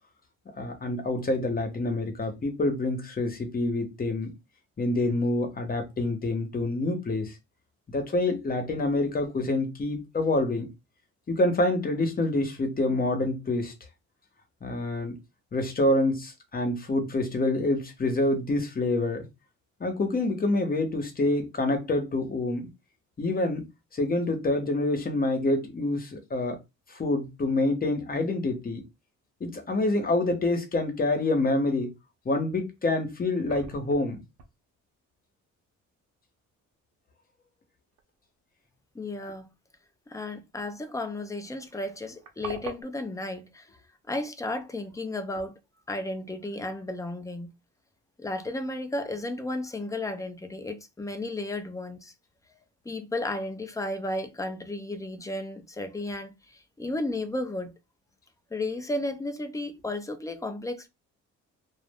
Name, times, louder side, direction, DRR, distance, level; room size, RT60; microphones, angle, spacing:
voice 1, 0.6-4.3 4.8-7.3 7.9-10.7 11.3-13.7 14.6-15.1 15.5-19.2 19.8-22.7 23.2-23.7 23.9-26.6 26.9-28.8 29.4-31.9 32.2-34.2, left 2 dB, 30° left, 0.9 m, -27 dB
sound 1, 32.8-32.9 33.1-34.1 34.4-34.5 36.9-37.1 38.0-38.1 38.3-38.4 40.8-40.9 41.1-41.2 41.5-42.8, right 5 dB, 80° right, 0.7 m, -42 dB
voice 2, 38.9-39.5 40.1-43.7 44.1-45.6 45.9-47.5 48.2-52.1 52.5-52.6 52.8-57.7 58.5-60.9, left 2 dB, 10° left, 0.5 m, -33 dB
2.3 x 2.0 x 3.5 m
cardioid pair, 90°, 30 cm